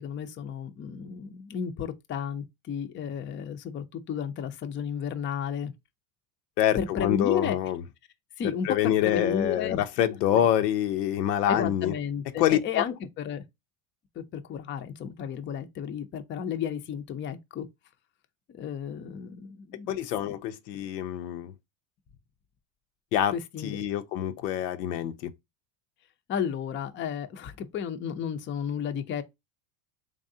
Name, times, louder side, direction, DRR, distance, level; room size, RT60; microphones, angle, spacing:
voice 1, 0.0-5.7 6.7-7.6 8.4-10.4 11.5-13.4 14.2-17.7 18.5-20.0 23.3-23.8 26.3-29.2, left 8 dB, 25° left, 0.5 m, -33 dB
voice 2, 6.6-7.8 8.6-11.9 12.4-12.8 19.9-21.5 23.1-23.3 23.6-25.3, left 11 dB, 85° left, 0.7 m, -26 dB
3.7 x 3.2 x 2.7 m
supercardioid pair, 110°, 48 cm